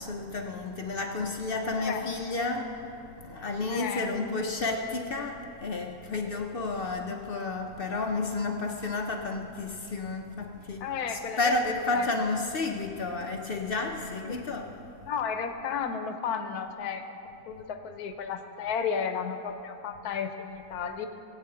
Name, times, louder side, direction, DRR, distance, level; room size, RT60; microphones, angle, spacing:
voice 1, 0.0-15.2, left 3 dB, 55° left, 3 dB, 0.7 m, -31 dB
voice 2, 3.7-4.1 10.8-11.5 11.9-12.1 14.2-14.3 15.1-21.1, left 6 dB, 80° left, 8 dB, 1.3 m, -33 dB
18.5 x 8.4 x 3.8 m, 2.7 s
omnidirectional pair, 1.6 m